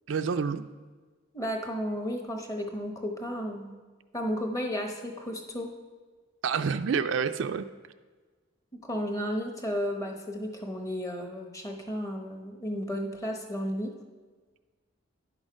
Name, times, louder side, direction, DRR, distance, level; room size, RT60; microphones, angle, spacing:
voice 1, 0.1-0.6 6.4-7.7, right 6 dB, 75° right, 10 dB, 0.4 m, -28 dB
voice 2, 1.3-3.8 4.1-5.7 8.8-13.9, equal, 15° left, 2 dB, 1.0 m, -33 dB
10.5 x 6.3 x 5.0 m, 1.4 s
head